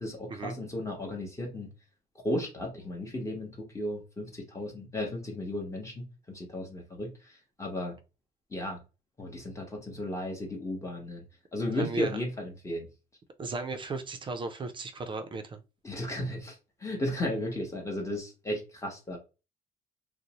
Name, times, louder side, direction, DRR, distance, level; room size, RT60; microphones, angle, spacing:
voice 1, 0.0-1.7 2.1-7.9 8.5-8.8 9.2-11.2 11.5-12.9 15.8-19.2, left 1 dB, 15° left, 0.8 m, -35 dB
voice 2, 11.7-12.2 13.4-15.6, right 3 dB, 30° right, 0.4 m, -36 dB
2.6 x 2.0 x 2.8 m
cardioid pair, 110°, 17 cm